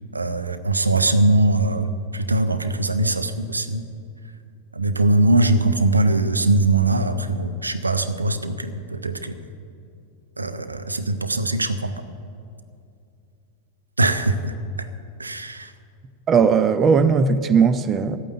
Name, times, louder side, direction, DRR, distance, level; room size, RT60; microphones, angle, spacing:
voice 1, 0.1-3.8 4.7-9.4 10.4-11.9 14.0-14.9 15.2-15.7, right 2 dB, 80° right, 0.8 m, -21 dB
voice 2, 16.3-18.2, right 5 dB, 25° right, 0.6 m, -17 dB
13.0 x 8.9 x 9.3 m
figure-of-eight pair, 90°, 0 cm